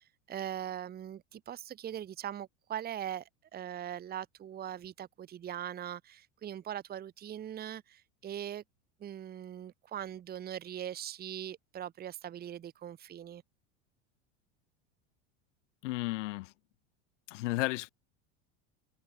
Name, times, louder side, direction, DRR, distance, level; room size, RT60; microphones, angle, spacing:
voice 1, 0.0-8.6 9.0-13.4, right 10 dB, 25° right, 1.1 m, -41 dB
voice 2, 15.8-16.5 17.3-17.9, left 20 dB, 75° left, 1.8 m, -33 dB
supercardioid pair, 120°, 36 cm